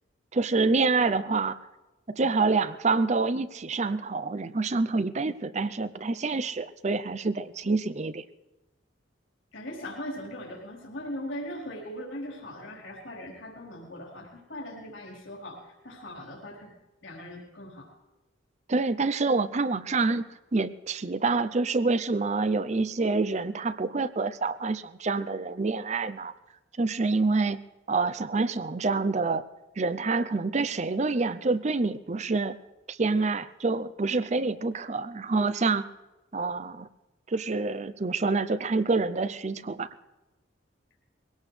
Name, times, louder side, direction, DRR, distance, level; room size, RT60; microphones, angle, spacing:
voice 1, 0.3-1.6 2.1-8.2 18.7-20.3 20.5-26.3 26.8-27.6 27.9-29.4 29.8-32.6 32.9-35.9 36.3-36.9 37.3-39.9, right 3 dB, 35° right, 15 dB, 0.5 m, -27 dB
voice 2, 9.5-16.7 17.0-17.9, left 1 dB, 80° left, -4 dB, 4.2 m, -39 dB
22.5 x 17.5 x 3.3 m, 1.1 s
head